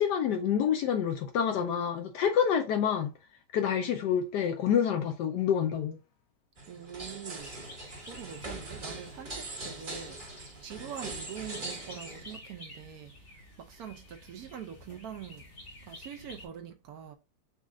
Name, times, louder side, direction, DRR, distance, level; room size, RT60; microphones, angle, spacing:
voice 1, 0.0-3.1 3.5-6.0, left 8 dB, 75° left, 1.1 m, -27 dB
sound 1, 6.6-12.4, right 2 dB, 30° right, 1.2 m, -42 dB
voice 2, 6.7-7.5 8.1-13.1 13.6-15.4 15.9-17.2, right 9 dB, 70° right, 0.9 m, -44 dB
sound 2, 7.4-16.5, left 1 dB, 50° left, 2.2 m, -50 dB
5.3 x 2.4 x 3.6 m
omnidirectional pair, 2.0 m